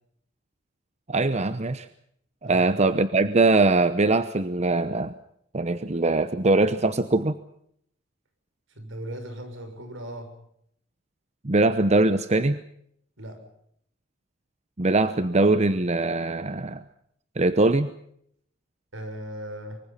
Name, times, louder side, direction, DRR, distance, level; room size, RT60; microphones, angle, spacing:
voice 1, 1.1-1.9 2.4-5.1 5.5-7.4 11.4-12.6 14.8-16.8 17.4-17.9, right 2 dB, 35° right, 12 dB, 0.9 m, -22 dB
voice 2, 8.7-10.3 13.2-13.4 18.9-19.8, right 1 dB, 75° right, 7 dB, 6.4 m, -37 dB
24.5 x 24.0 x 5.8 m, 0.69 s
head